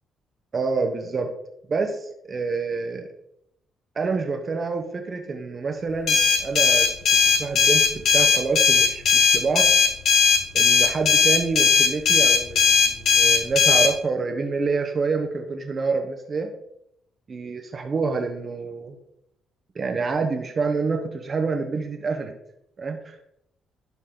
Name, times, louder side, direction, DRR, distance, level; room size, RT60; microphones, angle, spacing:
voice 1, 0.5-1.3 1.7-3.1 4.0-6.9 7.4-9.7 10.5-16.5 17.3-19.0 19.7-22.3 22.8-23.2, right 4 dB, 40° right, 5 dB, 0.9 m, -27 dB
sound 1, 6.1-13.9, left 5 dB, 65° left, 1.3 m, -18 dB
11.5 x 4.0 x 3.8 m, 0.77 s
cardioid pair, 90°, 0 cm